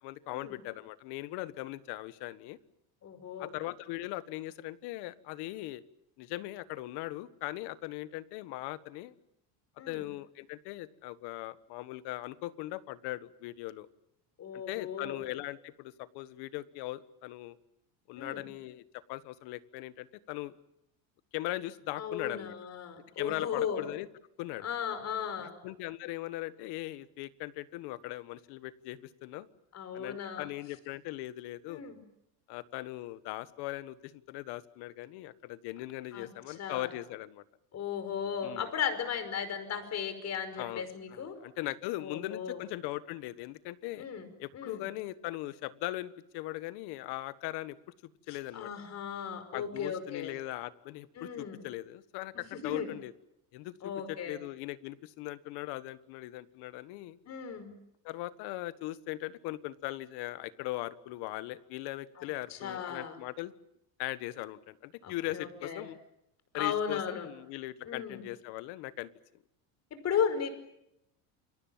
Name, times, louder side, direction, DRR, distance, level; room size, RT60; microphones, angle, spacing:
voice 1, 0.0-2.6 3.4-5.8 6.2-9.1 9.9-13.9 14.5-17.6 18.1-20.5 21.3-22.5 23.2-24.1 24.4-24.6 25.4-29.5 29.9-31.8 32.5-37.4 38.4-38.7 40.6-44.1 44.4-47.8 48.3-48.7 49.5-53.1 53.5-57.2 58.0-63.5 64.0-66.0 66.5-69.1, left 17 dB, 65° left, 15 dB, 1.5 m, -39 dB
voice 2, 3.0-3.5 9.8-10.0 14.4-15.2 18.2-18.4 22.0-23.8 24.6-25.6 29.7-30.5 31.7-32.0 36.1-36.9 37.7-41.4 42.0-42.6 44.0-44.8 48.3-50.3 51.2-51.6 52.5-52.9 53.8-54.4 57.3-57.7 62.2-62.3 62.5-63.1 65.0-65.9 66.5-67.3 67.8-68.2 69.9-70.5, left 7 dB, 40° left, 11 dB, 5.3 m, -36 dB
29.0 x 23.5 x 7.4 m, 0.79 s
cardioid pair, 135°, 42 cm